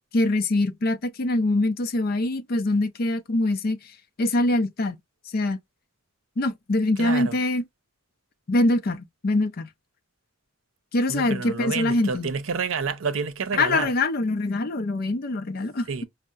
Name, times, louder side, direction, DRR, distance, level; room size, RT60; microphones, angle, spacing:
voice 1, 0.1-3.8 4.2-5.0 5.3-5.6 6.4-7.6 8.5-9.7 10.9-12.3 13.6-16.0, left 2 dB, 50° left, 0.5 m, -24 dB
voice 2, 7.0-7.4 11.1-13.9 15.9-16.0, right 5 dB, 80° right, 0.6 m, -29 dB
5.4 x 2.1 x 2.4 m
head